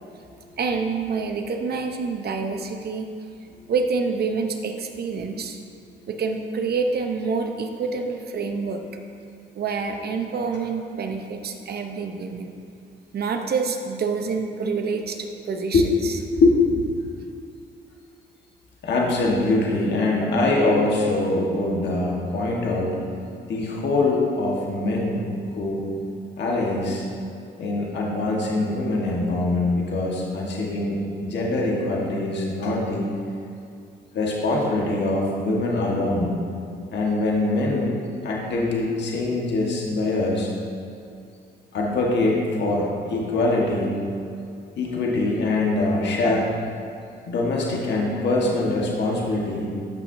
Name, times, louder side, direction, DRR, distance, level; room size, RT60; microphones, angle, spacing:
voice 1, 0.6-3.1 3.7-5.6 6.1-8.8 9.5-12.5 13.1-16.1, right 4 dB, 55° right, 5 dB, 0.9 m, -27 dB
voice 2, 16.3-16.9 18.8-23.0 23.5-25.3 25.5-25.8 26.4-27.0 27.6-33.1 34.1-36.4 36.9-38.0 38.2-40.5 41.7-44.0 44.8-46.5 47.3-49.7, left 2 dB, 65° left, -3 dB, 1.5 m, -23 dB
13.5 x 5.9 x 2.7 m, 2.4 s
supercardioid pair, 65°, 19 cm